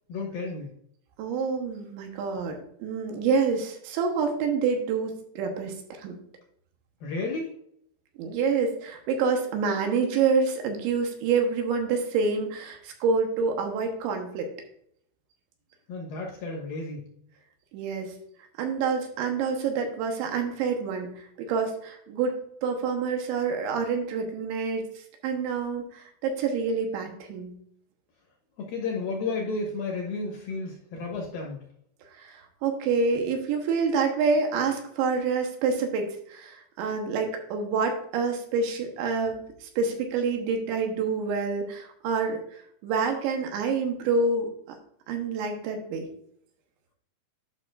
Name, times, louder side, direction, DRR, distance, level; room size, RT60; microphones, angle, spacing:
voice 1, 0.1-0.7 7.0-7.5 15.9-17.0 28.6-31.6, left 3 dB, 65° left, -1 dB, 2.5 m, -32 dB
voice 2, 1.2-6.2 8.2-14.5 17.7-18.1 18.6-21.1 21.4-24.9 25.2-27.6 32.2-42.4 42.8-44.5 45.1-46.1, right 5 dB, 80° right, 3 dB, 3.4 m, -27 dB
11.0 x 6.0 x 2.5 m, 0.68 s
omnidirectional pair, 5.2 m